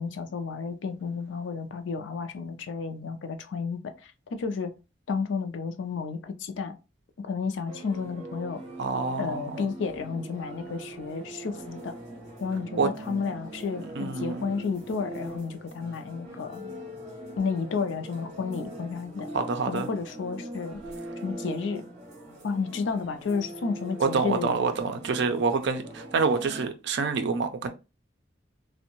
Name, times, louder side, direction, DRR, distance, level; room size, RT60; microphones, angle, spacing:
voice 1, 0.0-4.7 5.1-6.8 7.2-8.6 9.2-12.0 12.4-16.6 17.4-19.3 19.7-20.8 21.2-21.8 22.4-24.6, left 5 dB, 75° left, 0.4 m, -32 dB
sound 1, 7.7-26.7, right 1 dB, 40° right, 1.0 m, -42 dB
voice 2, 8.8-9.6 12.8-12.9 14.0-14.5 19.3-19.9 24.0-27.7, right 4 dB, 65° right, 0.4 m, -27 dB
2.6 x 2.1 x 2.8 m
head